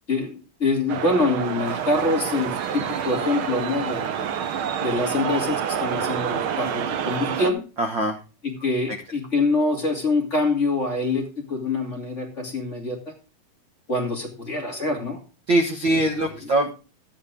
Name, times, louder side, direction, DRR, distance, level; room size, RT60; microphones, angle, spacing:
voice 1, 0.1-4.3 4.8-7.6 8.4-13.1 13.9-15.2 15.9-16.5, left 2 dB, 25° left, 0 dB, 2.6 m, -25 dB
sound 1, 0.9-7.5, right 8 dB, 75° right, 1.2 m, -28 dB
voice 2, 7.8-8.1 15.5-16.7, right 1 dB, 50° right, 3 dB, 1.6 m, -22 dB
13.0 x 9.7 x 3.6 m, 0.32 s
omnidirectional pair, 3.6 m